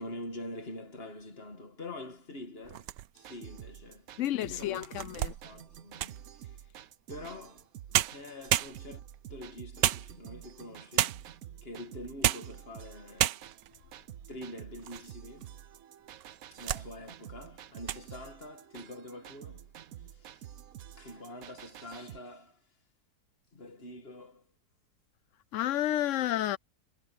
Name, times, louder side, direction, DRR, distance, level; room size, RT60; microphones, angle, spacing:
voice 1, 0.0-6.7 7.1-9.0 9.3-11.3 11.6-13.4 14.3-15.7 16.5-19.7 20.1-20.6 20.9-22.7 23.5-24.5, left 1 dB, 35° left, 2.3 m, -46 dB
sound 1, 2.6-3.4 4.0-4.1 4.6-6.3 7.6-7.7 7.9-9.1 9.8-10.5 11.0-11.4 12.0-12.6 12.9-13.0 13.2-13.7 14.3-15.1 15.4-15.5 16.2-16.9 17.2-17.5 17.8-18.1, right 13 dB, 90° right, 1.3 m, -31 dB
sound 2, 3.2-22.2, right 11 dB, 65° right, 1.1 m, -49 dB
voice 2, 4.2-5.3 25.5-26.6, left 13 dB, 70° left, 0.7 m, -30 dB
omnidirectional pair, 1.8 m